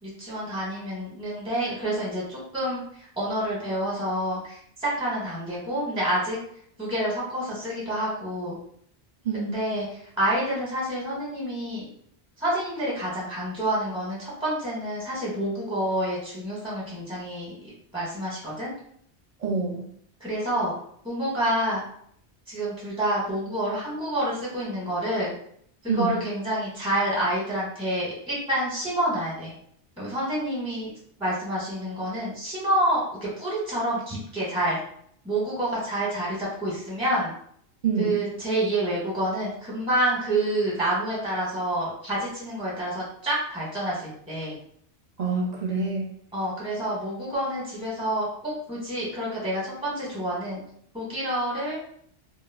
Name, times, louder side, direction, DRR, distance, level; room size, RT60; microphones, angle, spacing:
voice 1, 0.0-6.4 6.8-8.6 9.3-9.9 10.2-11.9 12.4-17.6 17.9-18.7 20.2-20.7 21.0-21.8 22.5-25.3 25.8-29.5 30.0-30.9 31.2-34.8 35.2-37.3 38.0-44.6 46.3-50.6 50.9-51.8, right 1 dB, 5° right, -7 dB, 0.8 m, -28 dB
voice 2, 19.4-19.8 25.9-26.2 37.8-38.2 45.2-46.1, right 4 dB, 45° right, -2 dB, 0.6 m, -26 dB
2.2 x 2.0 x 3.3 m, 0.66 s
omnidirectional pair, 1.1 m